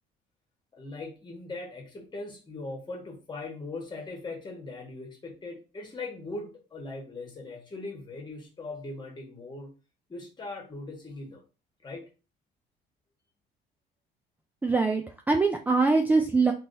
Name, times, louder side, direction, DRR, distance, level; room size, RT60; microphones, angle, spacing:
voice 1, 0.7-9.7 10.1-11.4 11.8-12.0, left 2 dB, 25° left, 1 dB, 1.4 m, -40 dB
voice 2, 14.6-16.5, right 3 dB, 10° right, 4 dB, 0.4 m, -23 dB
3.5 x 2.9 x 2.7 m, 0.32 s
cardioid pair, 110°, 17 cm